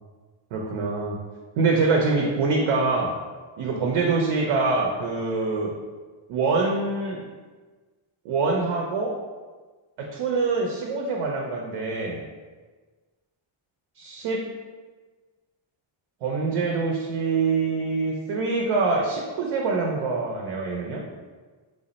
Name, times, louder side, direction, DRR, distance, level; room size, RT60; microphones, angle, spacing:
voice 1, 0.5-1.2 1.6-3.1 3.6-5.7 6.3-7.2 8.2-9.1 10.0-12.2 14.0-14.5 16.2-21.0, right 3 dB, 85° right, -1 dB, 0.6 m, -25 dB
3.4 x 2.0 x 3.9 m, 1.4 s
wide cardioid pair, 145°, 49 cm